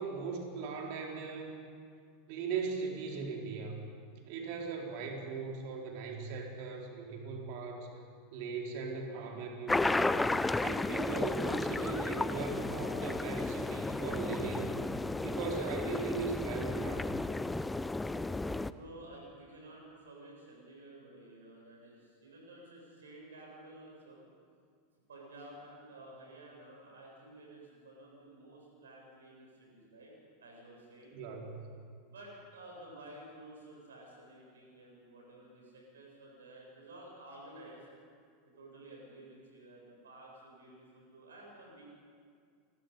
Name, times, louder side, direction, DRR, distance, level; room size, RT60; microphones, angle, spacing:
voice 1, 0.0-1.5 2.3-3.8 4.3-7.9 8.3-10.2 10.6-14.8 15.2-17.1 31.1-31.7, right 5 dB, 55° right, 0 dB, 4.5 m, -39 dB
sound 1, 9.7-18.7, left 2 dB, 10° left, 0.6 m, -33 dB
voice 2, 18.5-24.2 25.1-30.1 30.4-31.2 32.1-37.8 38.6-41.8, right 1 dB, 75° right, -2 dB, 7.7 m, -52 dB
28.0 x 22.0 x 5.5 m, 2.1 s
figure-of-eight pair, 85°, 0 cm